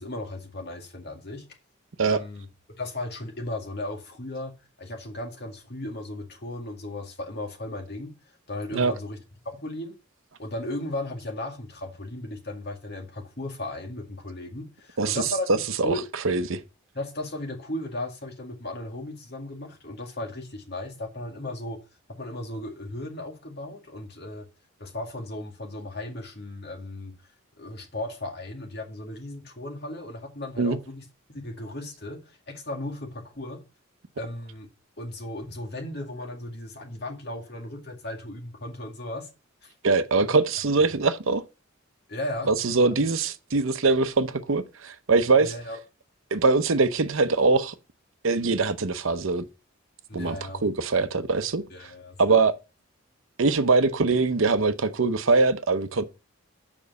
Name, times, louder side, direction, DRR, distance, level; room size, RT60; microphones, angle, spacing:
voice 1, 0.0-1.4 2.1-2.5 2.8-8.1 8.5-9.2 9.6-10.0 10.4-15.5 15.8-16.0 16.9-21.8 22.1-24.5 24.8-27.1 27.6-31.0 31.3-32.2 32.5-33.6 34.2-34.7 35.0-39.3 39.6-39.7 42.1-42.5 45.4-45.8 50.1-50.6 51.7-52.4, left 1 dB, 50° left, 2.1 m, -36 dB
voice 2, 16.2-16.6 30.6-30.8 39.8-41.4 42.5-45.5 46.3-47.7 48.2-49.4 50.1-50.4 50.6-51.6 52.2-52.6 53.4-56.0, right 3 dB, 70° right, 0.7 m, -22 dB
7.3 x 5.3 x 6.8 m
head